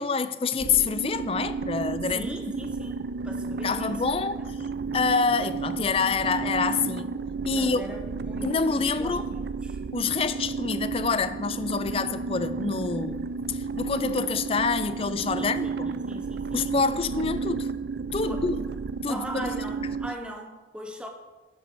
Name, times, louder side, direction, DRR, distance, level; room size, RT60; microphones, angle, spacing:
voice 1, 0.0-2.3 3.6-4.6 4.9-7.1 7.5-7.9 8.4-9.3 9.9-15.9 16.5-17.7 18.1-18.6 19.0-19.5, left 5 dB, 35° left, 0.4 m, -27 dB
sound 1, 0.6-20.1, right 4 dB, 65° right, 0.3 m, -32 dB
voice 2, 2.1-3.9 7.5-9.8 15.4-16.7 18.2-18.5 19.1-21.1, equal, 5° right, 0.9 m, -40 dB
10.5 x 6.8 x 4.5 m
head